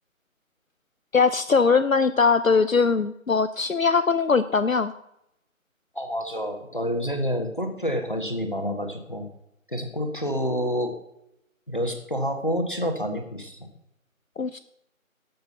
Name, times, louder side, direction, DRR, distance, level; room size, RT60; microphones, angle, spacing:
voice 1, 1.1-4.9 14.4-14.6, left 5 dB, 70° left, 12 dB, 0.7 m, -21 dB
voice 2, 5.9-9.3 9.7-10.9 11.7-13.7, equal, 35° left, 5 dB, 1.5 m, -28 dB
12.5 x 7.6 x 6.8 m, 0.81 s
figure-of-eight pair, 180°, 42 cm